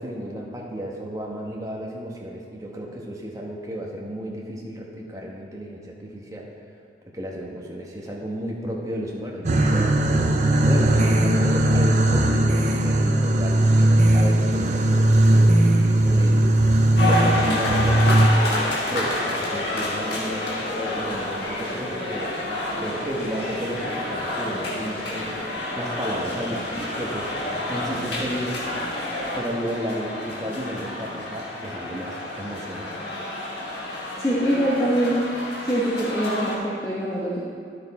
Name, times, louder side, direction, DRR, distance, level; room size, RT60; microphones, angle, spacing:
voice 1, 0.0-6.5 7.1-9.9 10.6-16.7 17.1-18.1 18.5-22.3 22.8-28.6 29.3-33.0, equal, 20° right, -2 dB, 1.2 m, -33 dB
sound 1, 9.4-18.3, right 1 dB, 40° right, 0.6 m, -18 dB
sound 2, 17.0-36.6, left 1 dB, 65° left, 1.7 m, -29 dB
voice 2, 34.2-35.2 35.6-37.4, equal, 15° left, -7 dB, 1.1 m, -24 dB
10.5 x 6.6 x 4.2 m, 2.2 s
head